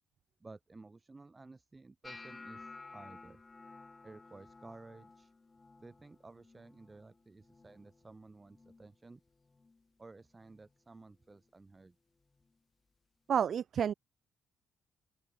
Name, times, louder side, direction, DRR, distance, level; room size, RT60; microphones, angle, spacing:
voice 1, 0.4-3.4 4.0-5.3 5.8-9.2 10.0-12.0, right 3 dB, 20° right, 5.4 m, -54 dB
sound 1, 2.0-8.1 8.4-8.9 9.3-9.8 10.4-10.7 12.4-12.5, left 3 dB, 25° left, 3.5 m, -54 dB
voice 2, 13.3-13.9, right 8 dB, 60° right, 0.4 m, -30 dB
open air
cardioid pair, 90°, 0 cm